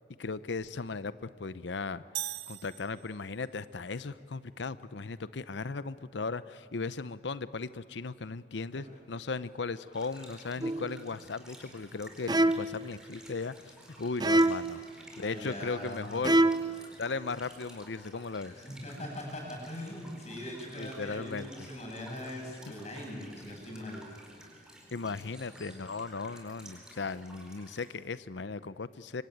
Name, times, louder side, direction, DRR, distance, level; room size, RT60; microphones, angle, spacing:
voice 1, 0.2-2.0 2.5-14.8 15.2-16.5 17.0-18.6 20.8-21.5 24.9-29.2, left 4 dB, 85° left, 15 dB, 0.7 m, -37 dB
sound 1, 2.1-3.5, right 13 dB, 70° right, 0.8 m, -40 dB
sound 2, 9.9-27.9, right 1 dB, 5° right, 4.5 m, -53 dB
sound 3, 10.6-11.0 12.3-12.9 14.2-14.8 16.2-16.8, right 1 dB, 25° right, 0.7 m, -25 dB
voice 2, 15.2-16.2 18.5-24.0, left 1 dB, 40° left, 0 dB, 7.9 m, -41 dB
25.5 x 25.0 x 9.3 m, 2.2 s
head